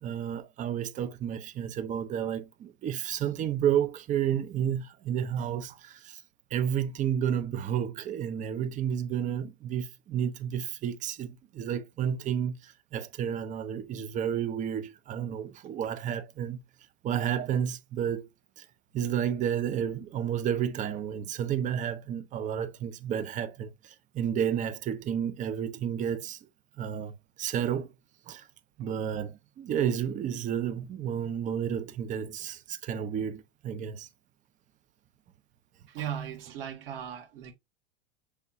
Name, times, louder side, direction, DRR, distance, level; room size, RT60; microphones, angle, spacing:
voice 1, 0.0-6.2 6.5-16.6 17.0-18.2 18.6-18.7 18.9-26.4 26.8-27.9 28.3-28.5 28.8-34.1, right 9 dB, 25° right, 0.5 m, -31 dB
voice 2, 35.9-37.5, right 9 dB, 60° right, 1.6 m, -37 dB
6.0 x 3.4 x 2.6 m
figure-of-eight pair, 90°, 32 cm